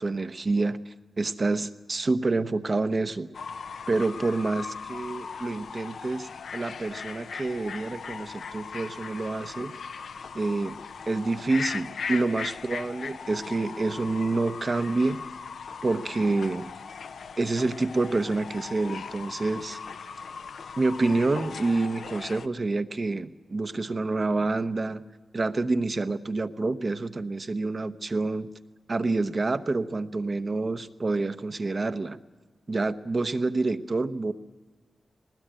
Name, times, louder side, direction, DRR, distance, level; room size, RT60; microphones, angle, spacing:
voice 1, 0.0-3.3 3.9-9.7 10.3-10.8 11.1-15.2 15.8-16.7 17.4-19.8 20.8-25.0 25.3-28.5 28.9-32.2 32.7-34.3, right 3 dB, 45° right, 10 dB, 0.9 m, -27 dB
Fowl / Bird, 3.3-22.5, left 6 dB, 85° left, 0.6 m, -39 dB
19.5 x 19.5 x 9.0 m, 1.3 s
cardioid pair, 75°, 0 cm